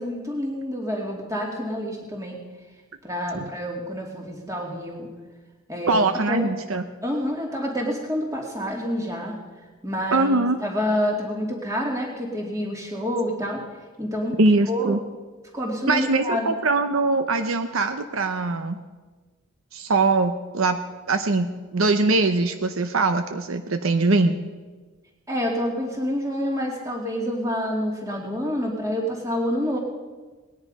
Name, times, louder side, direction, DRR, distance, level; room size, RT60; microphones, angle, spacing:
voice 1, 0.0-2.4 3.0-5.1 5.7-6.0 6.3-6.5 7.0-9.3 9.8-13.6 14.0-14.4 14.7-15.0 15.5-16.5 25.3-29.8, equal, 15° right, -1 dB, 2.5 m, -28 dB
voice 2, 5.9-6.8 10.1-10.6 14.4-15.0 15.9-18.8 19.7-20.8 21.1-24.3, right 3 dB, 70° right, 8 dB, 0.8 m, -22 dB
19.0 x 10.5 x 5.4 m, 1.3 s
head